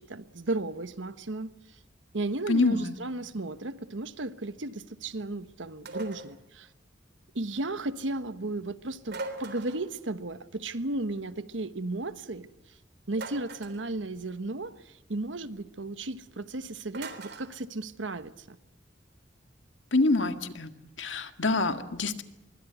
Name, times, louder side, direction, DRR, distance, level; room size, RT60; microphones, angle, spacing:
voice 1, 0.0-1.5 2.1-6.7 7.3-12.5 13.1-18.6, right 2 dB, 85° right, 12 dB, 1.2 m, -34 dB
voice 2, 2.5-3.0 19.9-20.7 21.0-22.2, left 2 dB, 85° left, 8 dB, 1.9 m, -26 dB
sound 1, 5.9-6.4 9.1-9.9 13.1-13.8 16.9-17.5, right 2 dB, 60° right, 3.5 m, -40 dB
25.0 x 23.0 x 8.1 m, 0.93 s
head